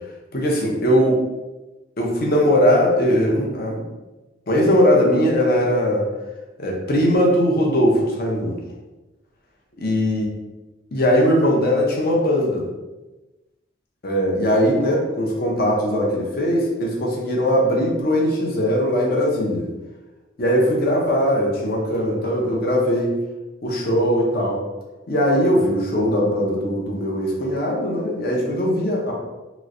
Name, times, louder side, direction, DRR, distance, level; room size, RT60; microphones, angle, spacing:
voice 1, 0.3-1.2 2.0-3.8 4.5-6.1 6.6-8.6 9.8-10.2 10.9-12.7 14.0-19.6 20.4-23.1 23.6-24.6 25.1-29.1, equal, 50° left, -2 dB, 0.7 m, -20 dB
3.1 x 3.0 x 2.5 m, 1.1 s
head